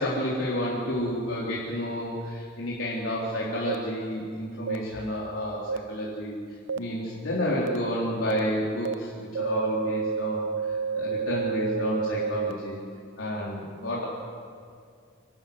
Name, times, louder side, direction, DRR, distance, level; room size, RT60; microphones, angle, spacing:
voice 1, 0.0-6.4 6.7-12.8 13.2-14.1, left 1 dB, 90° left, -6 dB, 3.7 m, -30 dB
sound 1, 3.7-3.8 4.7-4.8 5.7-5.8 6.7-6.8 7.7-7.8 8.3-8.4 8.9-9.0 9.4-12.5, right 5 dB, 70° right, 0.8 m, -29 dB
26.0 x 12.5 x 9.6 m, 2.2 s
head